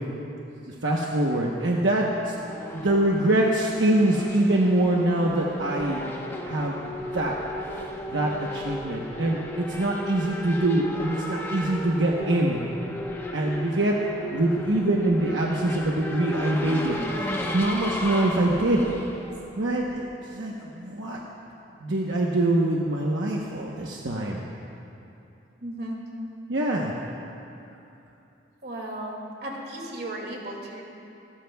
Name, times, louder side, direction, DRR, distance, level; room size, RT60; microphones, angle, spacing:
voice 1, 0.7-2.3 2.7-6.0 6.4-6.8 7.1-7.3 7.7-12.6 13.3-13.9 14.3-17.0 17.5-18.8 19.6-21.2 21.8-24.5 26.5-26.9, right 1 dB, 85° right, -2 dB, 1.0 m, -24 dB
Race car auto racing / Accelerating revving vroom, 2.1-20.1, left 1 dB, 15° left, 1.0 m, -35 dB
voice 2, 25.6-26.0 28.6-30.8, right 1 dB, 55° right, -1 dB, 2.4 m, -35 dB
27.5 x 13.5 x 2.3 m, 2.8 s
head